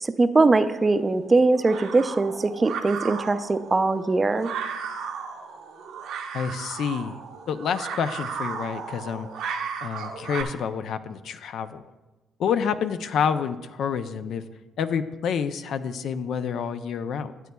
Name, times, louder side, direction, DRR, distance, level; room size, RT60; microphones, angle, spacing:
voice 1, 0.0-4.5, right 3 dB, 25° right, 11 dB, 0.5 m, -21 dB
sound 1, 0.5-10.4, right 6 dB, 85° right, 0.9 m, -35 dB
voice 2, 6.3-7.2 7.5-9.3 9.8-11.8 12.4-14.4 14.8-17.3, left 7 dB, 70° left, 11 dB, 0.4 m, -28 dB
13.5 x 8.2 x 2.3 m, 1.2 s
cardioid pair, 90°, 0 cm